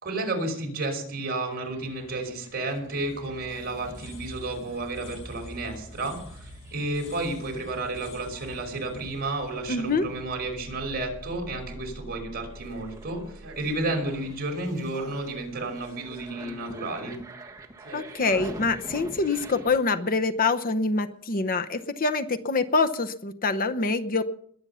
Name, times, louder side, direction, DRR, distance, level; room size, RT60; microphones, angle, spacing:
voice 1, 0.0-13.2 13.6-17.2, right 2 dB, 45° right, 2 dB, 5.2 m, -32 dB
sound 1, 1.5-19.8, right 1 dB, 15° right, 1.6 m, -46 dB
sound 2, 3.7-10.6, left 1 dB, 60° left, 7.0 m, -48 dB
voice 2, 9.7-10.1 17.9-24.2, left 3 dB, 40° left, 9 dB, 0.9 m, -25 dB
sound 3, 13.4-14.4 14.9-17.1 17.8-18.6 19.4-19.5, right 1 dB, 65° right, 4.3 m, -44 dB
21.5 x 8.8 x 5.7 m, 0.62 s
head